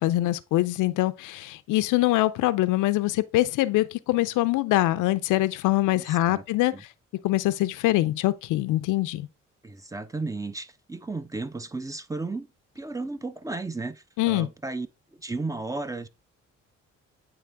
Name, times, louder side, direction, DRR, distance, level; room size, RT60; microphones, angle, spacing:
voice 1, 0.0-6.7 7.2-9.3 14.2-14.5, left 17 dB, 90° left, 0.5 m, -24 dB
voice 2, 6.0-6.4 6.7-6.8 9.6-12.5 12.8-14.9 15.2-16.1, right 3 dB, 10° right, 0.5 m, -34 dB
8.7 x 3.4 x 3.4 m
cardioid pair, 90°, 30 cm